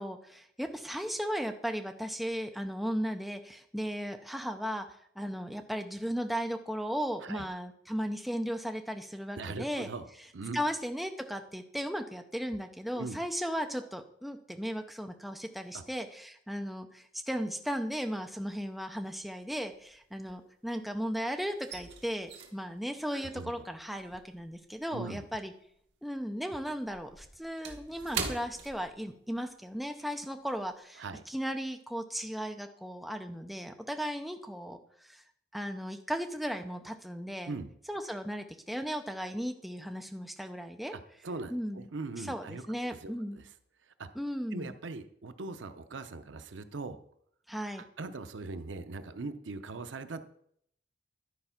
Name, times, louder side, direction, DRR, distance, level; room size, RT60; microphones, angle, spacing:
voice 1, 0.0-4.9 5.2-9.9 10.5-25.5 26.0-35.2 35.5-37.5 37.9-40.9 41.5-41.9 42.2-43.4 44.1-44.7 47.5-47.8, equal, ahead, 5 dB, 0.6 m, -36 dB
voice 2, 9.4-10.1 10.3-10.6 12.9-13.2 15.7-15.8 23.1-23.5 24.9-25.3 31.0-31.2 37.5-37.7 40.9-42.6 43.0-43.5 44.0-44.1 44.5-47.0 47.8-50.3, right 3 dB, 90° right, 10 dB, 0.7 m, -40 dB
sound 1, 18.1-18.7 19.0-20.9 21.2-25.9 26.2-29.5 29.8-30.0 30.5-30.7, right 5 dB, 70° right, 1.5 m, -43 dB
11.5 x 4.5 x 5.8 m, 0.67 s
head